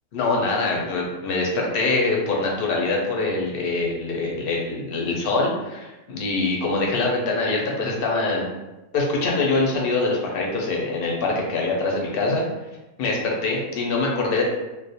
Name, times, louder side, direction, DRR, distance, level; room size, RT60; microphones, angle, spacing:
voice 1, 0.1-8.5 8.9-12.4 13.0-14.4, left 3 dB, 60° left, -1 dB, 0.6 m, -24 dB
2.3 x 2.1 x 2.7 m, 1.0 s
omnidirectional pair, 1.4 m